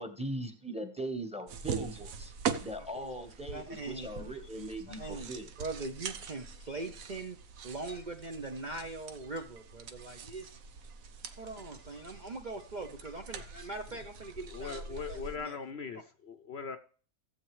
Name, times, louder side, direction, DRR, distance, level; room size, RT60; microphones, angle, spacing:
voice 1, 0.0-2.3 2.6-5.5, right 1 dB, 5° right, 1.1 m, -40 dB
sound 1, 1.5-15.4, right 6 dB, 75° right, 1.3 m, -42 dB
voice 2, 2.8-4.3 5.0-5.3 5.6-7.4 7.6-10.5 11.4-15.6, right 3 dB, 40° right, 0.8 m, -41 dB
voice 3, 14.5-16.8, left 5 dB, 55° left, 0.9 m, -40 dB
15.0 x 7.9 x 3.2 m
omnidirectional pair, 1.5 m